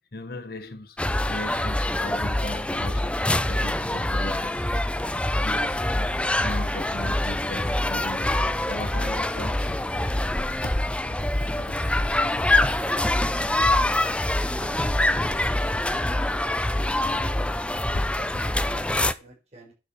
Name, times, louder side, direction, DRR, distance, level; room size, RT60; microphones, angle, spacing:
voice 1, 0.0-5.1 5.4-10.9 11.1-12.5 15.7-15.9 17.8-18.1, left 2 dB, 60° left, 1.1 m, -39 dB
sound 1, 1.0-19.1, left 1 dB, 5° left, 0.5 m, -25 dB
voice 2, 14.2-15.4 17.1-17.4 17.8-19.7, right 1 dB, 40° right, 5.6 m, -47 dB
11.0 x 4.9 x 6.0 m
head